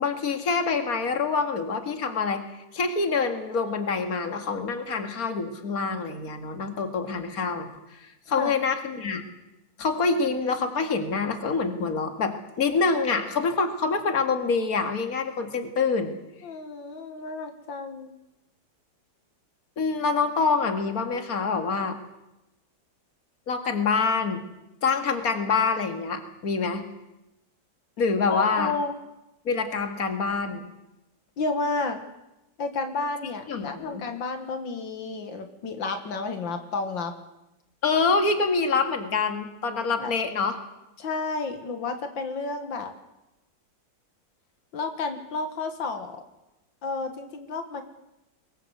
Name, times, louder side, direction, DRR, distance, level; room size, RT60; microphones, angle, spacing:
voice 1, 0.0-2.4 2.7-9.2 9.8-16.1 19.8-22.0 23.5-24.4 24.8-26.8 28.0-28.7 29.5-30.7 33.5-34.0 37.8-40.6, left 4 dB, 50° left, 6 dB, 2.5 m, -26 dB
voice 2, 16.4-18.1 28.3-29.0 31.4-32.0 32.6-37.1 40.0-40.1 41.0-42.9 44.7-46.2 46.8-47.8, left 3 dB, 85° left, 7 dB, 2.4 m, -31 dB
23.5 x 19.0 x 8.1 m, 0.95 s
omnidirectional pair, 2.0 m